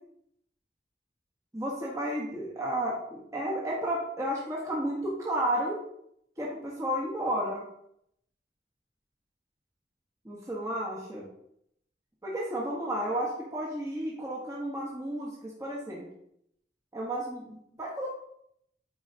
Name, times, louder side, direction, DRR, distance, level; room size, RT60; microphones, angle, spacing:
voice 1, 1.5-5.8 6.4-7.6 10.2-11.2 12.2-16.1 16.9-18.1, right 1 dB, 20° right, -5 dB, 1.2 m, -32 dB
8.7 x 4.7 x 2.9 m, 0.73 s
head